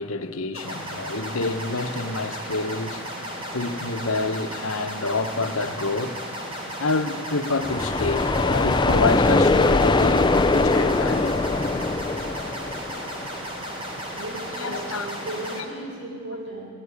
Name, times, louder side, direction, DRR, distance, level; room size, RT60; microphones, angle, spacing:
voice 1, 0.0-3.0 3.5-6.1 6.8-11.4 14.6-15.1, left 3 dB, 80° left, 1.1 m, -27 dB
sound 1, 0.5-15.6, equal, 25° right, 3.2 m, -34 dB
sound 2, 7.6-13.4, left 3 dB, 20° left, 0.5 m, -21 dB
voice 2, 14.2-16.7, right 1 dB, 55° right, 7.7 m, -35 dB
19.0 x 15.5 x 9.9 m
head